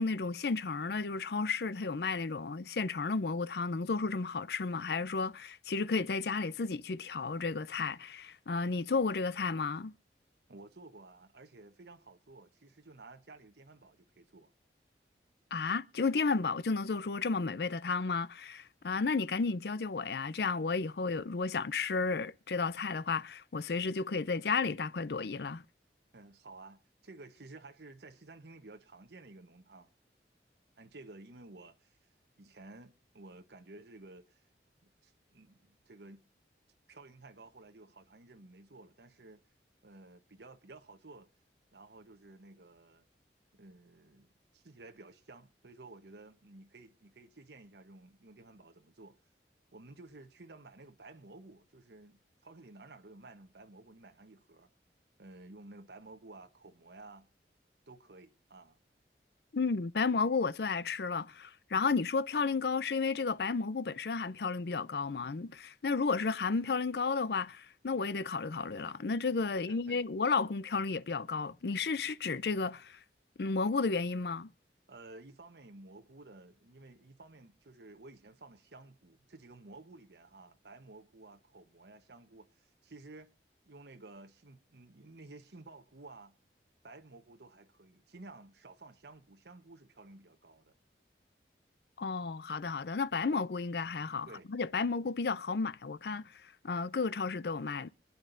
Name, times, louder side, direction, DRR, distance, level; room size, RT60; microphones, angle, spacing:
voice 1, 0.0-9.9 15.5-25.6 59.5-73.0 73.4-74.5 92.0-97.9, left 4 dB, 65° left, 0.5 m, -33 dB
voice 2, 10.5-14.5 26.1-29.9 30.8-32.0 32.4-34.5 34.8-36.2 36.9-39.4 39.8-41.3 41.7-43.1 43.5-49.2 49.7-54.7 55.2-57.3 57.9-58.8 69.5-70.0 74.9-83.3 83.7-86.4 86.8-90.7 94.3-94.5, right 2 dB, 75° right, 1.0 m, -53 dB
25.0 x 9.6 x 2.6 m
head